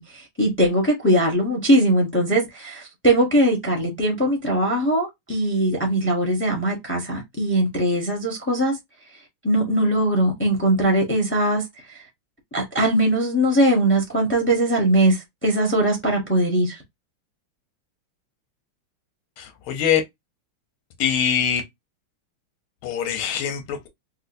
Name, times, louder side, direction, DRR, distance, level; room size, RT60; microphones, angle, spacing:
voice 1, 0.0-8.8 9.4-11.6 12.5-16.8, right 1 dB, 10° left, 0.7 m, -20 dB
voice 2, 19.4-20.0 21.0-21.6 22.8-23.9, left 8 dB, 90° left, 1.7 m, -23 dB
4.3 x 2.3 x 2.6 m
omnidirectional pair, 2.3 m